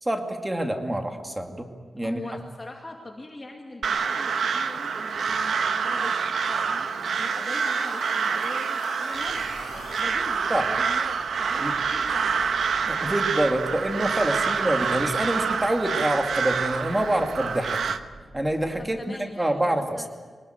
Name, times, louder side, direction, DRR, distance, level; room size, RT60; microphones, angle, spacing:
voice 1, 0.0-2.2 10.5-10.7 11.6-11.7 12.8-17.8 18.3-20.1, right 1 dB, 10° right, 4 dB, 2.3 m, -26 dB
voice 2, 2.0-12.5 18.8-20.1, left 2 dB, 20° left, 1 dB, 2.3 m, -42 dB
Crow, 3.8-18.0, right 6 dB, 85° right, 1.1 m, -27 dB
sound 1, 6.3-11.9, left 5 dB, 60° left, 2.1 m, -46 dB
sound 2, 9.1-18.9, right 2 dB, 60° right, 6.5 m, -49 dB
24.5 x 20.0 x 9.2 m, 1.4 s
wide cardioid pair, 170°, 0 cm